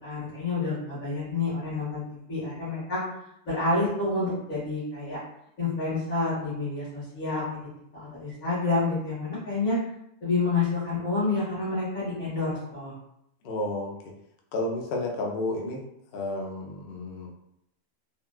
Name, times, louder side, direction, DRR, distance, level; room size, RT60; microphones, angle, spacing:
voice 1, 0.0-2.0 2.3-3.0 3.4-5.2 5.6-7.6 7.9-9.8 10.2-12.9, left 3 dB, 85° left, -12 dB, 1.8 m, -28 dB
voice 2, 13.4-13.9 14.5-15.8 16.1-17.3, left 2 dB, 60° left, -1 dB, 0.7 m, -31 dB
3.5 x 2.3 x 2.3 m, 0.79 s
omnidirectional pair, 1.4 m